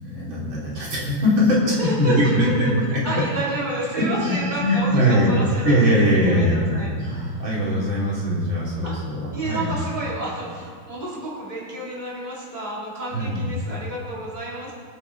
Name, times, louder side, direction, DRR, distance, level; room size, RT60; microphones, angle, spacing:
voice 1, 0.0-3.0 3.9-5.4 5.6-9.8 13.1-13.5, equal, 70° right, -6 dB, 4.1 m, -21 dB
voice 2, 1.8-2.5 3.0-5.8 6.3-6.9 7.3-7.4 8.8-9.0 9.3-14.7, right 1 dB, 20° right, -7 dB, 3.6 m, -30 dB
24.5 x 8.8 x 4.2 m, 2.1 s
omnidirectional pair, 2.2 m